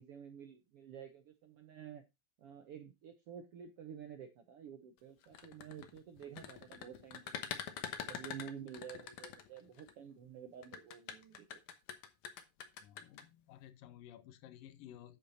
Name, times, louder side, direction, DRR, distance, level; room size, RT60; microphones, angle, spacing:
voice 1, 0.0-2.0 2.4-7.5 8.0-11.6, right 8 dB, 70° right, 1.4 m, -50 dB
sound 1, 5.2-9.9 10.6-13.2, left 9 dB, 65° left, 2.3 m, -45 dB
voice 2, 12.8-15.2, left 11 dB, 85° left, 2.5 m, -55 dB
8.6 x 7.6 x 4.1 m
omnidirectional pair, 3.9 m